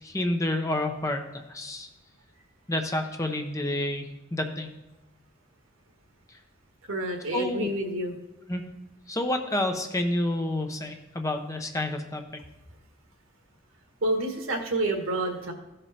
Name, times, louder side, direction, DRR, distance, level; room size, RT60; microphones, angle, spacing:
voice 1, 0.0-1.9 2.7-4.7 7.3-7.7 8.5-8.6 9.1-12.2, left 1 dB, 15° left, 4 dB, 0.7 m, -29 dB
voice 2, 6.9-8.1 14.0-15.5, right 1 dB, 90° right, 3 dB, 1.6 m, -28 dB
14.5 x 5.1 x 4.3 m, 1.0 s
head